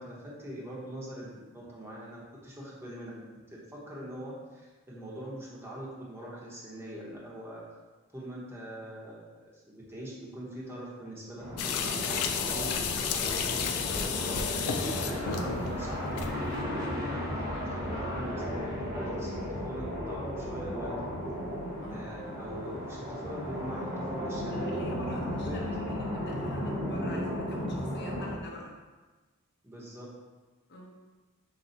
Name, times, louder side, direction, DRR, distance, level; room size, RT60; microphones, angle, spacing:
voice 1, 0.0-7.6 8.1-17.4 17.7-21.1 21.9-24.7 25.0-25.6 29.6-30.1, right 1 dB, 10° right, -5 dB, 1.0 m, -42 dB
sound 1, 11.4-28.3, equal, 40° right, 1.2 m, -35 dB
sound 2, 11.6-16.6, left 7 dB, 90° left, 0.4 m, -32 dB
voice 2, 24.5-28.7 30.7-30.9, equal, 50° left, -2 dB, 0.8 m, -42 dB
5.7 x 2.3 x 4.0 m, 1.3 s
head